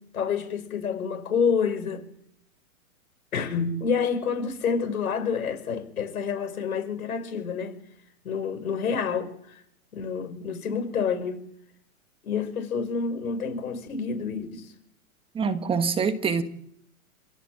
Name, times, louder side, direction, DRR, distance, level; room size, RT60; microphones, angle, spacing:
voice 1, 0.1-2.0 3.3-7.8 8.2-9.3 9.9-11.4 12.2-14.7, left 6 dB, 75° left, 5.6 m, -28 dB
voice 2, 15.3-16.4, right 5 dB, 10° right, 1.5 m, -25 dB
27.5 x 17.0 x 7.6 m
hypercardioid pair, 145°, 43 cm